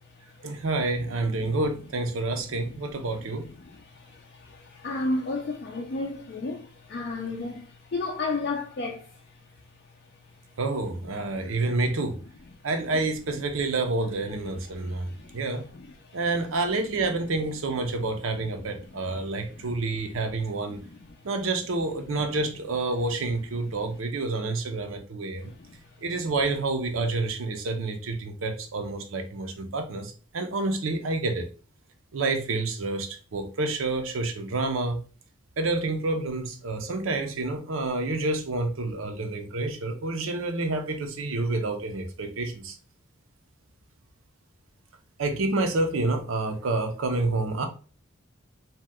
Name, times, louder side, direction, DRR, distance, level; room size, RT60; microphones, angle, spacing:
voice 1, 0.4-3.4 10.6-12.2 12.6-15.1 15.3-15.6 16.1-20.8 21.2-25.5 26.0-31.5 32.1-35.0 35.6-42.7 45.2-47.7, right 2 dB, 75° right, 0.6 m, -28 dB
voice 2, 2.6-3.3 3.6-9.2 11.3-11.7 14.8-15.4 15.7-16.2 18.6-19.1 19.6-19.8 20.7-21.2 23.6-23.7 25.4-25.7, left 3 dB, 50° left, 0.4 m, -34 dB
2.8 x 2.2 x 3.4 m
head